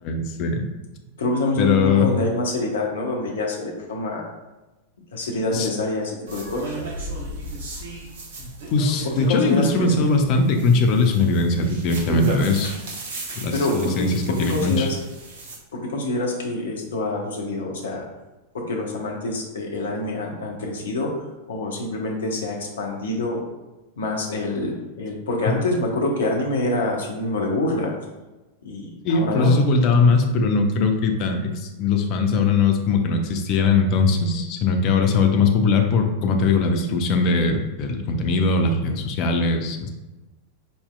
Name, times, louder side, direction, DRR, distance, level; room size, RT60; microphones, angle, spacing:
voice 1, 0.0-0.7 1.6-2.1 5.5-5.7 8.4-12.7 13.4-14.9 25.5-25.6 29.0-39.9, left 4 dB, 40° left, 4 dB, 0.6 m, -20 dB
voice 2, 1.2-4.2 5.1-6.8 9.0-9.9 13.5-14.1 14.5-15.0 15.7-18.0 18.5-21.1 21.5-23.4 24.0-27.9 28.6-29.5, left 2 dB, 65° left, 0 dB, 1.0 m, -26 dB
sound 1, 6.3-15.6, right 1 dB, 55° right, 0.9 m, -35 dB
5.5 x 4.3 x 2.3 m, 1.1 s
figure-of-eight pair, 90°, 0 cm